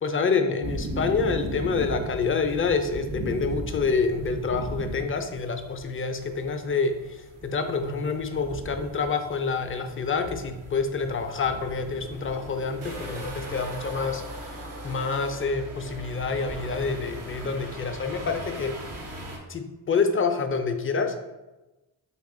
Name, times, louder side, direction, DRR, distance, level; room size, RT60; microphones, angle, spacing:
voice 1, 0.0-18.8 19.5-21.3, left 4 dB, 30° left, 7 dB, 0.3 m, -27 dB
sound 1, 0.6-19.4, right 1 dB, 75° right, 0.8 m, -38 dB
3.0 x 2.4 x 3.6 m, 1.0 s
cardioid pair, 45°, 49 cm